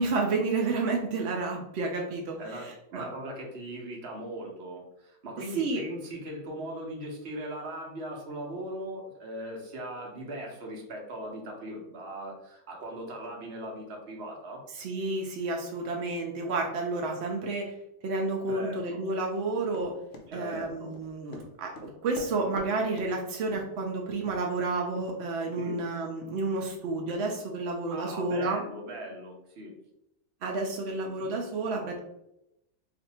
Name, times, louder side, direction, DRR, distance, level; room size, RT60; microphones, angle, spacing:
voice 1, 0.0-3.1 5.5-5.8 14.7-17.7 18.0-19.9 20.3-28.6 30.4-32.0, right 3 dB, 70° right, 1 dB, 0.6 m, -30 dB
voice 2, 2.2-2.7 2.9-14.6 18.5-19.0 20.3-20.9 25.6-25.8 27.9-29.7 31.2-31.3, right 1 dB, 50° right, 0 dB, 0.9 m, -39 dB
Run, 19.7-22.7 23.0-23.1 23.5-23.8 24.3-24.4 25.0-25.1, left 1 dB, 65° left, 0.5 m, -44 dB
2.6 x 2.5 x 4.1 m, 0.84 s
omnidirectional pair, 1.6 m